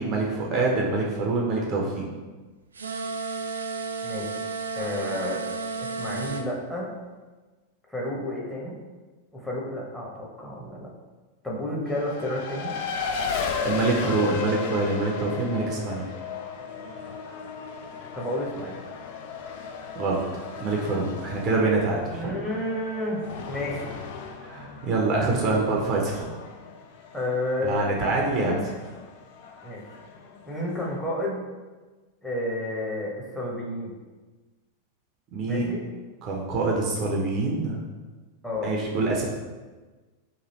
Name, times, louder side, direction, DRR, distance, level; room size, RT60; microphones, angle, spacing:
voice 1, 0.0-2.0 13.6-16.1 20.0-20.2 20.6-22.3 24.4-26.3 27.6-28.5 35.3-35.6 36.2-37.8 38.6-39.3, right 3 dB, 35° right, -2 dB, 0.6 m, -25 dB
sound 1, 2.7-6.5, right 4 dB, 75° right, 0.3 m, -32 dB
voice 2, 4.7-5.4 5.8-6.9 7.9-8.7 9.3-10.9 11.4-12.7 18.1-18.8 22.1-23.8 27.1-27.9 28.4-28.7 29.6-29.8 30.5-31.4 32.2-33.9 35.5-35.8 38.4-38.7, left 1 dB, 5° left, -4 dB, 0.9 m, -31 dB
Race car auto racing, 11.9-31.0, left 5 dB, 50° left, 0.4 m, -36 dB
3.1 x 2.6 x 4.0 m, 1.3 s
figure-of-eight pair, 90°, 0 cm